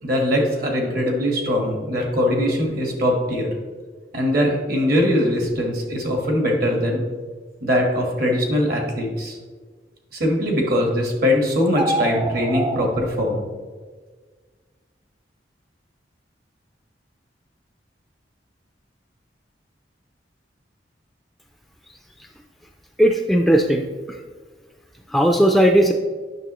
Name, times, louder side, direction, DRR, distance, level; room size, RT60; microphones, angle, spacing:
voice 1, 0.0-3.5 4.1-7.0 7.6-9.4 10.1-13.4, left 1 dB, 55° right, 1 dB, 1.6 m, -21 dB
sound 1, 11.7-12.9, right 1 dB, 25° right, 0.8 m, -25 dB
voice 2, 23.0-23.8 25.1-25.9, equal, ahead, 4 dB, 0.3 m, -16 dB
9.1 x 6.0 x 3.0 m, 1.5 s
head